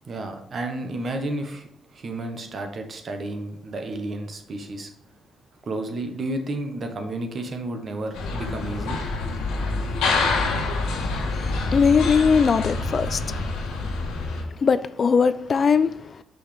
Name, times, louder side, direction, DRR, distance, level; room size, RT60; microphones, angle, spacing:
voice 1, 0.0-4.9 5.6-9.0, right 2 dB, 45° right, 1.2 m, -31 dB
sound 1, 8.1-14.4, left 3 dB, 90° left, 1.3 m, -26 dB
voice 2, 11.4-13.4 14.6-16.1, left 6 dB, 45° left, 0.3 m, -20 dB
6.3 x 5.5 x 3.4 m
cardioid pair, 90°, 0 cm